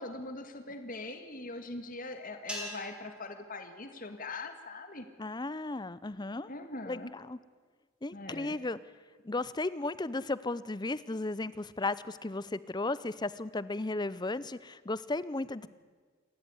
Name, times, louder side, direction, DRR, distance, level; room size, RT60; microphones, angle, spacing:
voice 1, 0.0-5.1 6.5-7.1 8.1-8.6, left 2 dB, 40° left, 7 dB, 1.9 m, -42 dB
sound 1, 2.5-4.9, equal, 5° right, 3.6 m, -45 dB
voice 2, 5.2-6.5 6.9-7.4 8.0-8.8 9.2-15.7, left 2 dB, 20° left, 17 dB, 0.6 m, -35 dB
28.0 x 14.0 x 9.7 m, 1.5 s
head